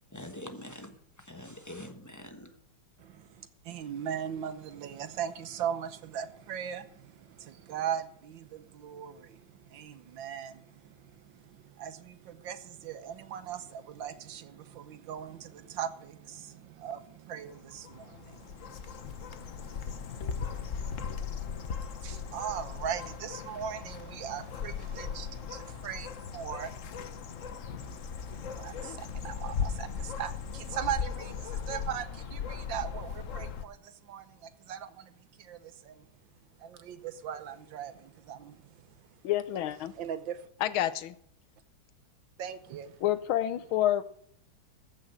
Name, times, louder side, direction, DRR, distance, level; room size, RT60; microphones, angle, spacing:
voice 1, 0.1-0.9 1.2-2.5, left 1 dB, 10° left, 0.9 m, -44 dB
voice 2, 3.0-36.1 36.6-38.8 40.0-40.5 42.4-43.0, right 9 dB, 70° right, 1.6 m, -40 dB
sound 1, 17.5-33.6, left 6 dB, 50° left, 1.0 m, -38 dB
voice 3, 39.2-39.9 40.6-41.1 43.0-44.0, left 12 dB, 85° left, 1.6 m, -28 dB
14.5 x 6.4 x 7.8 m
omnidirectional pair, 2.2 m